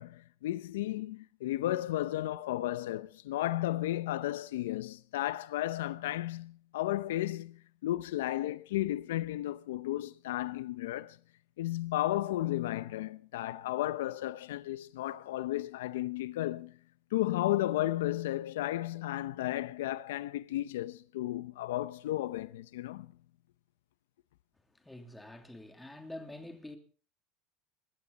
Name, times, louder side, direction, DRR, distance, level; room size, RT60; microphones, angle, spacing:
voice 1, 0.0-11.2 11.6-16.7 17.1-23.1, left 15 dB, 90° left, 0.7 m, -34 dB
voice 2, 24.7-26.8, left 1 dB, 5° left, 2.9 m, -46 dB
21.0 x 16.0 x 4.1 m
supercardioid pair, 125°, 0 cm